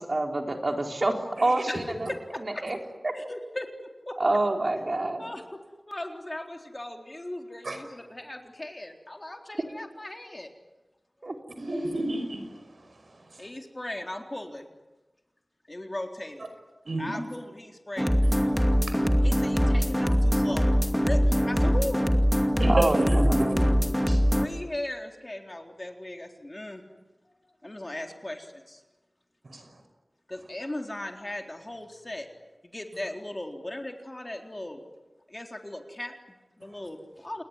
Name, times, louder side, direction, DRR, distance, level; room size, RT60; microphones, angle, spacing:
voice 1, 0.0-2.1 2.4-2.8 3.0-3.1 4.2-5.2 11.2-11.3 22.6-23.7, right 2 dB, 55° right, 3 dB, 4.2 m, -27 dB
voice 2, 1.7-2.6 3.2-3.7 4.1-4.2 5.2-5.6 5.9-10.5 13.4-14.7 15.7-16.5 17.0-18.2 19.2-20.6 21.0-22.0 24.3-26.8 27.6-28.8 30.3-32.3 32.6-34.8 35.3-37.4, left 1 dB, 30° left, 4 dB, 3.9 m, -37 dB
voice 3, 11.6-12.5 16.9-17.2 18.2-18.3 18.8-19.3 20.1-20.2 22.6-23.3 24.1-24.2 29.4-29.6, right 2 dB, 85° right, 7 dB, 5.5 m, -31 dB
sound 1, 18.0-24.5, equal, ahead, 2.4 m, -23 dB
28.5 x 20.5 x 9.9 m, 1.1 s
wide cardioid pair, 60°, 0 cm